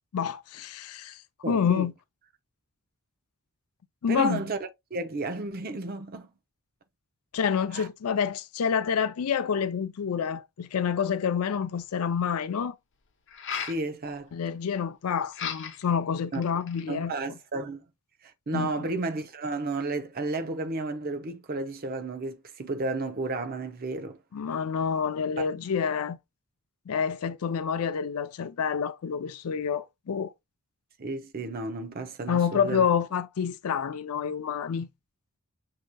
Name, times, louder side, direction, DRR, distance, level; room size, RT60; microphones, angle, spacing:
voice 1, 0.1-1.9 4.0-4.4 7.3-12.7 14.3-17.4 18.5-18.9 24.3-26.2 26.9-30.3 32.3-34.9, left 7 dB, 80° left, 0.4 m, -28 dB
voice 2, 1.4-1.9 4.1-4.6 4.9-6.3 7.7-7.9 13.5-14.3 16.3-16.4 16.9-17.8 18.5-24.2 25.4-25.5 31.0-32.9, right 3 dB, 45° right, 0.6 m, -32 dB
sound 1, 11.6-11.7 13.3-13.8 15.3-15.9 16.3-16.9, left 7 dB, 55° left, 0.8 m, -35 dB
6.3 x 2.8 x 2.2 m
head